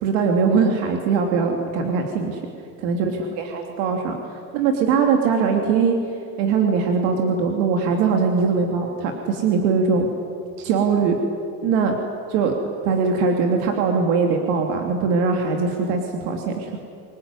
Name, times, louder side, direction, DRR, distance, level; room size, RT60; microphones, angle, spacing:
voice 1, 0.0-2.4 2.8-5.9 6.4-10.1 10.6-11.2 11.6-11.9 12.3-12.5 12.8-16.8, right 5 dB, 90° right, 3 dB, 3.0 m, -21 dB
25.5 x 20.0 x 9.8 m, 2.5 s
cardioid pair, 145°, 36 cm